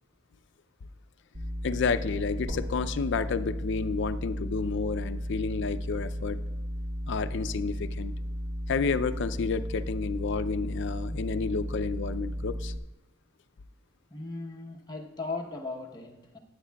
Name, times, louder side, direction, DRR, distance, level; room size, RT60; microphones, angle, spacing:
sound 1, 1.3-12.8, equal, 45° right, 0.9 m, -34 dB
voice 1, 1.6-6.4 7.1-8.1 8.7-12.7, left 5 dB, 65° left, 13 dB, 0.5 m, -30 dB
sound 2, 8.1-8.2 9.1-9.2, equal, 80° right, 1.8 m, -48 dB
voice 2, 14.1-16.4, left 3 dB, 20° left, -1 dB, 0.9 m, -37 dB
19.5 x 8.2 x 2.3 m, 0.98 s
head